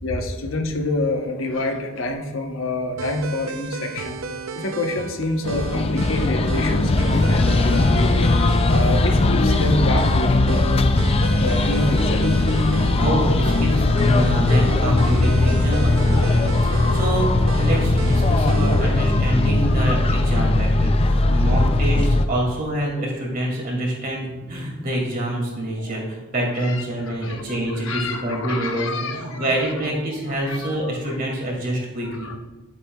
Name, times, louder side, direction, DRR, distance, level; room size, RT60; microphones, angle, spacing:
voice 1, 0.0-4.2 4.5-10.7 11.4-12.4 16.2-16.4 18.8-19.4 19.7-19.9 25.8-26.1 26.5-27.4 27.7-29.9 30.3-31.2 32.0-32.4, left 2 dB, 80° left, 3 dB, 1.0 m, -28 dB
sound 1, 3.0-19.0, right 3 dB, 90° right, 0.5 m, -34 dB
sound 2, 5.4-22.3, left 2 dB, 30° left, 0.4 m, -19 dB
voice 2, 13.0-32.3, right 1 dB, 45° right, -2 dB, 2.3 m, -26 dB
10.0 x 8.4 x 2.4 m, 1.1 s
head